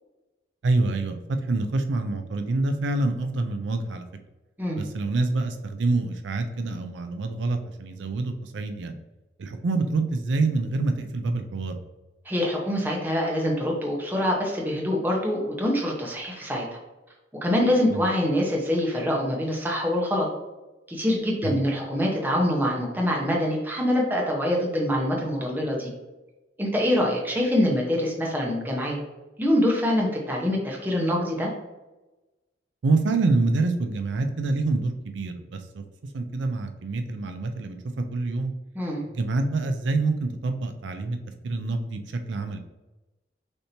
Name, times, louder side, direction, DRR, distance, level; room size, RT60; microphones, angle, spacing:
voice 1, 0.6-4.0 4.8-9.0 9.4-11.8 17.9-18.1 21.4-21.6 32.8-38.5 39.1-41.2 41.4-42.6, right 3 dB, 80° right, 7 dB, 0.4 m, -26 dB
voice 2, 12.2-16.6 17.4-20.3 20.9-25.9 26.6-29.0 29.4-31.5 38.7-39.0, left 1 dB, 10° right, -2 dB, 0.9 m, -25 dB
6.6 x 2.8 x 2.9 m, 1.1 s
head